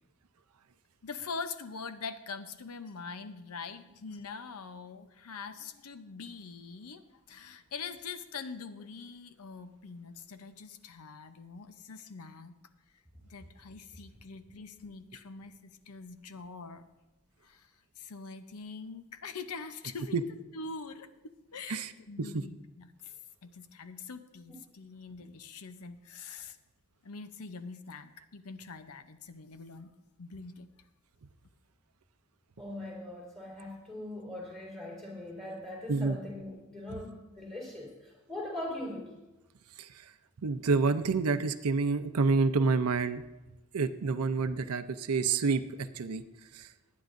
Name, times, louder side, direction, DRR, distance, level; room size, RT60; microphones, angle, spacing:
voice 1, 1.0-12.6 13.3-16.8 17.4-17.7 18.0-20.2 20.5-26.6 27.0-29.9 30.2-30.7, left 4 dB, 85° left, 10 dB, 0.7 m, -44 dB
voice 2, 32.6-39.2, left 1 dB, ahead, -3 dB, 3.7 m, -41 dB
voice 3, 40.4-43.2 43.7-45.6 46.0-46.2 46.5-46.7, right 4 dB, 85° right, 10 dB, 0.6 m, -28 dB
20.0 x 9.5 x 2.6 m, 1.0 s
head